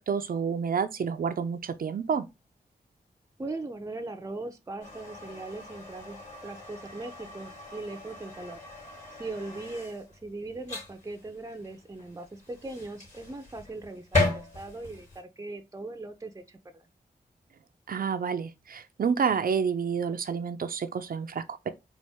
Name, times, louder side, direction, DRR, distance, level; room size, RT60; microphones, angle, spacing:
voice 1, 0.0-2.3 17.9-21.7, right 6 dB, 55° right, 0.6 m, -29 dB
voice 2, 3.4-8.6 9.1-16.9, right 2 dB, 20° right, 0.6 m, -39 dB
sound 1, 4.8-15.2, left 2 dB, 45° left, 2.6 m, -36 dB
4.2 x 2.5 x 3.5 m
cardioid pair, 45°, 17 cm